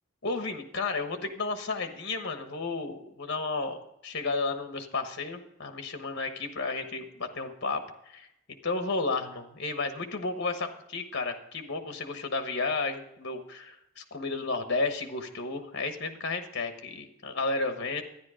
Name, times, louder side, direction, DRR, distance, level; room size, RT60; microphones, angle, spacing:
voice 1, 0.2-3.8 4.0-18.0, left 3 dB, 55° left, 7 dB, 1.2 m, -32 dB
12.5 x 10.0 x 5.0 m, 0.81 s
head